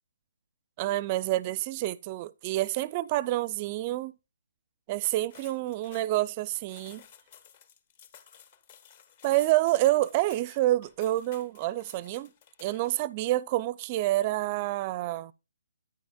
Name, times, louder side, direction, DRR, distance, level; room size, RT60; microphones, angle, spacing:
voice 1, 0.8-4.2 4.9-7.0 9.2-12.3 12.6-15.3, right 16 dB, 25° right, 0.4 m, -28 dB
sound 1, 5.0-13.1, left 8 dB, 35° left, 0.7 m, -55 dB
9.6 x 9.5 x 2.3 m
hypercardioid pair, 155°, 0 cm